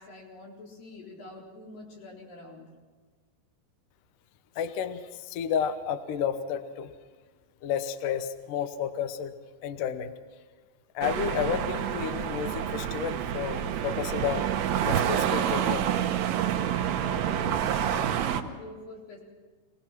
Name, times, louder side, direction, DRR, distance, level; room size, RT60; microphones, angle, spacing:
voice 1, 0.0-2.8 17.0-19.2, left 2 dB, 55° left, -3 dB, 5.7 m, -45 dB
voice 2, 4.6-6.9 7.6-9.3 9.6-10.1 10.9-14.5 14.8-16.1, left 8 dB, 70° left, 9 dB, 2.1 m, -31 dB
sound 1, 11.0-18.4, right 9 dB, 75° right, 2.8 m, -28 dB
26.5 x 18.0 x 5.9 m, 1.4 s
omnidirectional pair, 5.0 m